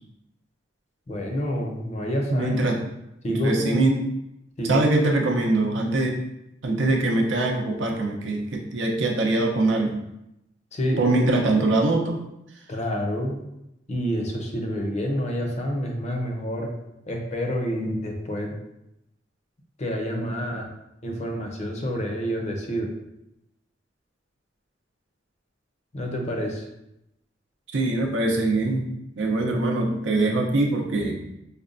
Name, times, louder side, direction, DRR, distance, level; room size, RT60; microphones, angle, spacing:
voice 1, 1.1-2.6 3.2-3.8 4.6-5.0 5.9-6.1 10.7-11.0 12.7-13.4 13.9-16.7 17.1-18.5 19.8-20.7 21.0-22.9 25.9-26.7, equal, 35° left, 1 dB, 0.5 m, -28 dB
voice 2, 2.3-2.8 3.3-4.0 4.6-6.2 6.6-10.0 11.0-12.2 27.7-28.9 29.2-31.2, right 2 dB, 75° right, 1 dB, 0.6 m, -23 dB
5.0 x 2.2 x 2.5 m, 0.87 s
head